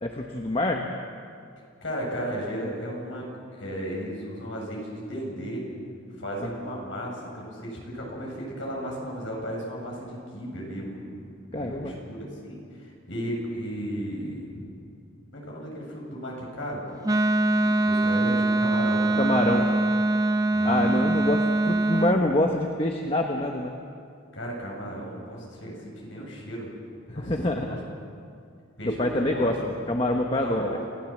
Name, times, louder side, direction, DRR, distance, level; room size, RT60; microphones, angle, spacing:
voice 1, 0.0-0.9 11.5-11.9 19.2-19.6 20.6-23.7 27.1-27.8 29.0-30.8, left 1 dB, 30° left, 2 dB, 1.2 m, -26 dB
voice 2, 1.8-5.6 6.2-14.7 15.3-17.0 17.6-19.7 20.5-20.9 24.3-26.7 27.1-27.8 28.8-29.5 30.4-30.8, equal, 70° left, -2 dB, 7.6 m, -35 dB
Wind instrument woodwind instrument, 17.0-22.2, right 2 dB, 20° right, 0.6 m, -23 dB
29.0 x 17.0 x 7.6 m, 2.3 s
head